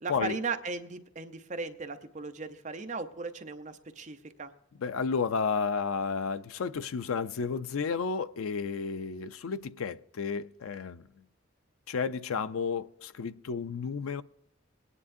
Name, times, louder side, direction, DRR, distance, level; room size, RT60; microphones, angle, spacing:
voice 1, 0.0-4.5, right 4 dB, 35° right, 0.7 m, -37 dB
voice 2, 4.8-11.1 11.9-14.2, left 5 dB, 85° left, 0.4 m, -32 dB
21.5 x 9.8 x 2.6 m
head